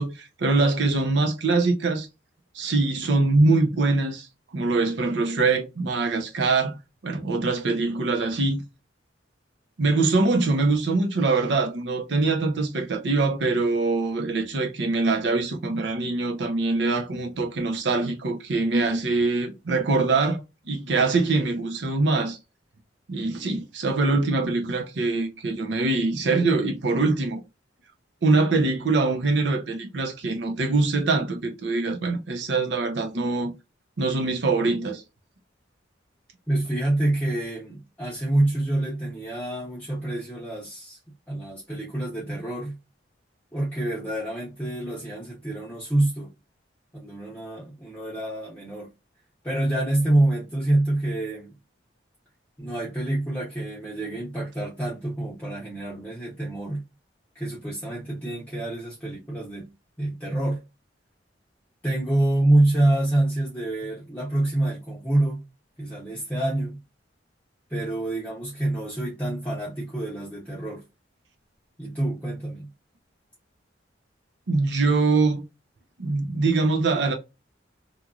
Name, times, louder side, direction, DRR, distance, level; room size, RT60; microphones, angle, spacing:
voice 1, 0.0-2.1 2.5-4.3 4.5-6.7 7.0-8.6 9.8-22.4 23.1-27.4 28.2-33.5 34.0-35.0 74.5-75.4 76.0-77.1, right 3 dB, 70° right, 0.6 m, -23 dB
voice 2, 36.5-41.0 41.3-42.8 43.5-46.3 47.0-48.9 49.4-51.5 52.6-56.8 57.3-59.7 60.0-60.6 61.8-65.4 65.8-66.8 67.7-70.8 71.8-72.7, right 1 dB, 10° left, 0.7 m, -26 dB
2.9 x 2.5 x 2.3 m
head